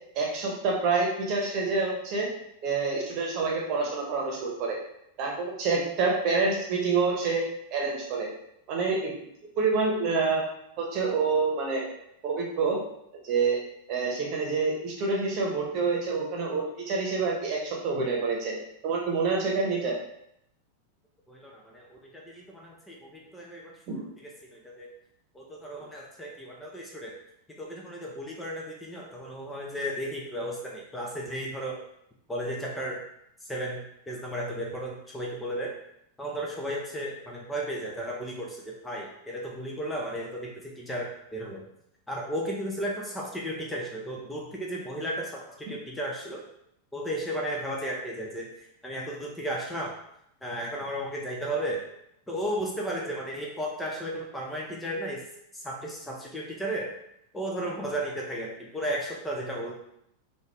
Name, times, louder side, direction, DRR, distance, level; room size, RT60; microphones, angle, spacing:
voice 1, 0.1-2.3 2.6-4.8 5.2-7.4 7.7-8.3 8.7-9.1 9.6-10.5 10.8-11.9 12.2-12.8 13.2-13.6 13.9-18.6 18.8-20.0, right 4 dB, 40° right, -2 dB, 1.0 m, -27 dB
voice 2, 21.3-24.9 25.3-27.1 27.6-31.8 32.3-33.0 33.4-35.7 36.2-41.6 42.1-46.4 46.9-49.9 50.4-51.8 52.3-55.2 55.5-56.9 57.3-59.7, right 1 dB, 10° left, -2 dB, 0.6 m, -34 dB
3.9 x 2.5 x 3.3 m, 0.76 s
figure-of-eight pair, 90°, 0 cm